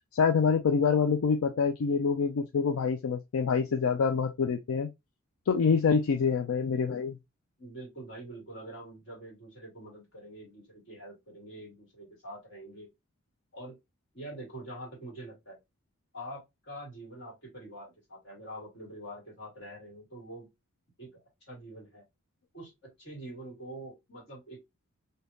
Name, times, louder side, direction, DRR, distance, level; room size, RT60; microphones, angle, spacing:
voice 1, 0.1-4.9 5.5-7.2, left 5 dB, 80° left, 0.4 m, -26 dB
voice 2, 5.7-6.0 7.6-12.9 13.5-13.8 14.1-15.6 16.1-20.5 21.0-21.1 21.5-22.0 22.5-24.6, right 1 dB, 55° left, 2.1 m, -45 dB
3.5 x 2.7 x 2.6 m
head